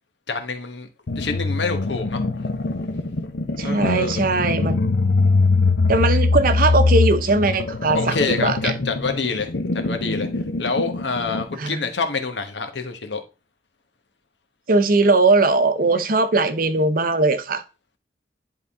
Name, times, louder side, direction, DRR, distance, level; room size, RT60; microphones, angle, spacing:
voice 1, 0.3-2.2 3.6-4.3 7.9-10.3 10.6-13.2, left 4 dB, 90° left, 1.3 m, -27 dB
sound 1, 1.1-11.5, left 3 dB, 70° left, 0.7 m, -22 dB
voice 2, 3.6-4.8 5.9-8.7 11.6-11.8 14.7-17.6, right 3 dB, 55° right, 0.7 m, -19 dB
11.0 x 3.7 x 3.7 m
head